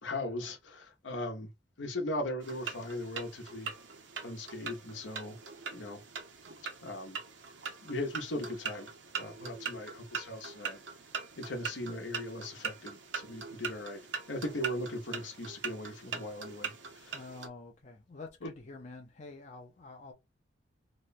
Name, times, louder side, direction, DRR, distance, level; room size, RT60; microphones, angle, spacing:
voice 1, 0.0-1.5 1.8-3.7 4.2-5.4 5.7-6.0 6.8-7.2 7.8-10.8 11.4-14.0 14.3-17.2 18.4-18.5, left 1 dB, 75° left, 0.9 m, -38 dB
sound 1, 2.4-17.5, right 6 dB, 70° right, 0.8 m, -42 dB
voice 2, 17.1-20.1, left 3 dB, 35° left, 0.6 m, -47 dB
3.0 x 2.2 x 4.0 m
head